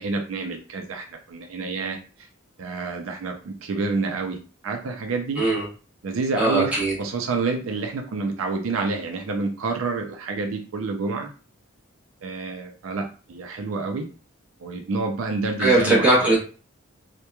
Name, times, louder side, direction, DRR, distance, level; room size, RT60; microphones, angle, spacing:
voice 1, 0.0-2.0 2.6-4.4 4.6-5.4 6.0-11.3 12.2-14.1 14.6-16.1, right 3 dB, 80° right, 4 dB, 0.4 m, -28 dB
voice 2, 6.4-6.9 15.6-16.4, right 2 dB, 5° right, -6 dB, 1.0 m, -19 dB
2.9 x 2.1 x 2.2 m, 0.36 s
head